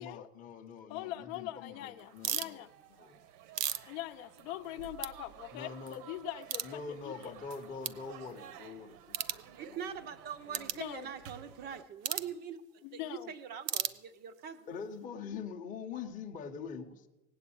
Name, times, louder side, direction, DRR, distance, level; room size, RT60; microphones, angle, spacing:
voice 1, 0.0-2.6 2.9-3.3 5.5-6.0 6.6-9.9 10.5-10.8 14.7-17.1, left 5 dB, 15° left, 3 dB, 0.8 m, -44 dB
voice 2, 0.9-2.7 3.8-7.3 10.7-11.1 12.8-13.3, left 14 dB, 60° left, 10 dB, 0.7 m, -42 dB
sound 1, 1.1-11.8, right 9 dB, 80° right, 1.2 m, -54 dB
sound 2, 2.2-2.5 3.2-4.7 5.0-5.1 5.6-5.7 6.5-6.7 7.3-7.4 7.8-8.0 9.1-9.4 10.5-10.8 12.0-12.3 13.6-14.4, right 12 dB, 60° right, 0.8 m, -35 dB
voice 3, 9.6-14.7, right 7 dB, 20° right, 11 dB, 0.5 m, -43 dB
18.0 x 8.2 x 8.6 m, 1.0 s
supercardioid pair, 170°, 46 cm